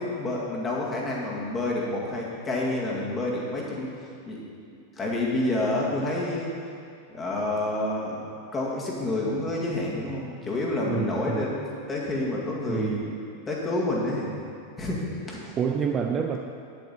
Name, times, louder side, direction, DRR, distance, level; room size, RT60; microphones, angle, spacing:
voice 1, 0.0-3.9 4.3-6.5 7.1-8.3 8.5-11.6 11.9-13.2 13.5-14.3 14.8-15.5, left 2 dB, 20° left, -4 dB, 2.1 m, -29 dB
voice 2, 10.9-11.6 12.7-13.0 15.6-16.4, right 7 dB, 25° right, 4 dB, 0.5 m, -28 dB
10.0 x 8.6 x 4.3 m, 2.4 s
figure-of-eight pair, 90°, 0 cm